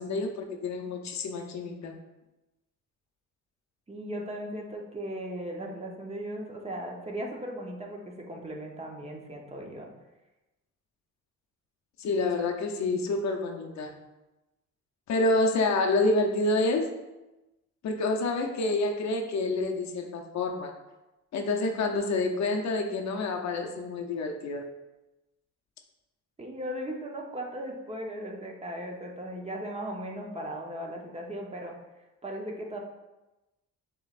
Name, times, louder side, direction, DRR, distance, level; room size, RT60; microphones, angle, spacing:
voice 1, 0.0-1.9 12.0-13.9 15.1-16.9 17.8-20.7 21.3-24.6, left 2 dB, 65° left, 3 dB, 0.7 m, -28 dB
voice 2, 3.9-9.9 26.4-31.7 32.2-32.8, right 1 dB, 20° right, 0 dB, 0.8 m, -37 dB
6.5 x 3.0 x 2.5 m, 1.0 s
cardioid pair, 90°, 30 cm